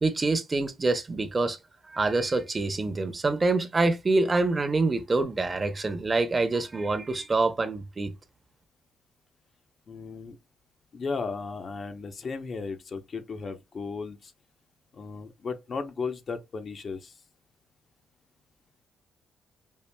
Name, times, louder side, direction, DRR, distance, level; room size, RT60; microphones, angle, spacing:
voice 1, 0.0-1.6 1.9-8.1, right 3 dB, 30° right, 0.7 m, -26 dB
voice 2, 9.9-10.4 10.9-14.3 14.9-17.1, left 4 dB, 50° left, 0.7 m, -35 dB
5.4 x 2.5 x 2.2 m
cardioid pair, 85°, 0 cm